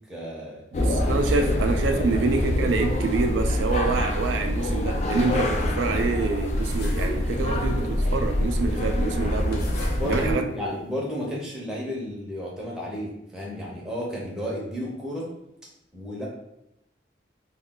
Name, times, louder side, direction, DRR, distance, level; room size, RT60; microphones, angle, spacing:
voice 1, 0.1-0.6 1.0-1.5 1.9-2.0 9.9-15.3 15.9-16.3, equal, 5° right, -5 dB, 0.6 m, -32 dB
sound 1, 0.7-10.3, left 1 dB, 35° left, 0.3 m, -25 dB
voice 2, 0.7-9.7 10.0-10.5, right 4 dB, 80° right, 5 dB, 0.3 m, -26 dB
sound 2, 6.6-7.3 7.6-8.2 8.8-8.9 9.3-11.0, left 1 dB, 55° left, 0.7 m, -37 dB
Sigh, 7.2-7.8, right 1 dB, 60° right, 0.8 m, -44 dB
2.3 x 2.3 x 3.6 m, 0.82 s
head